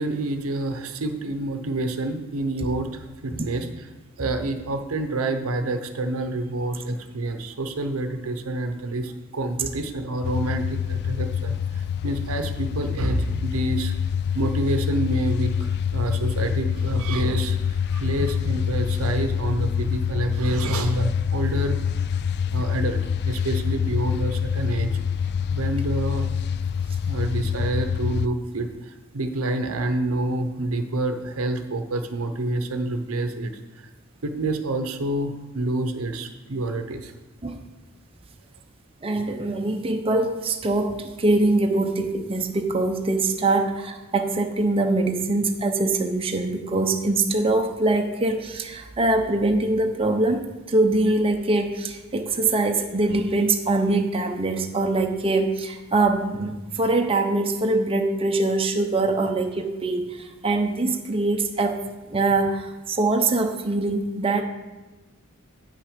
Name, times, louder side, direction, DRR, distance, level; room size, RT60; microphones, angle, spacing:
voice 1, 0.0-3.7 4.2-13.9 14.3-21.8 22.5-24.9 25.5-26.3 27.0-33.6 34.2-37.1, right 2 dB, 80° right, 7 dB, 0.8 m, -28 dB
sound 1, 10.2-28.3, left 7 dB, 50° left, 0.3 m, -26 dB
voice 2, 39.0-61.8 62.1-64.4, right 2 dB, 25° right, 3 dB, 0.6 m, -23 dB
8.6 x 6.1 x 5.0 m, 1.1 s
head